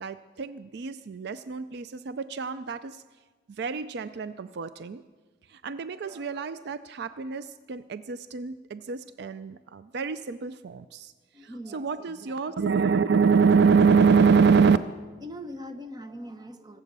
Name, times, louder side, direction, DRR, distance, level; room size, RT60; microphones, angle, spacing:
voice 1, 0.0-3.0 3.5-5.0 5.5-11.1 11.7-14.8, right 5 dB, 60° right, 13 dB, 0.4 m, -25 dB
voice 2, 6.0-6.8 11.3-12.7 15.2-16.8, equal, 20° right, 8 dB, 0.9 m, -43 dB
24.5 x 8.3 x 6.7 m, 1.4 s
head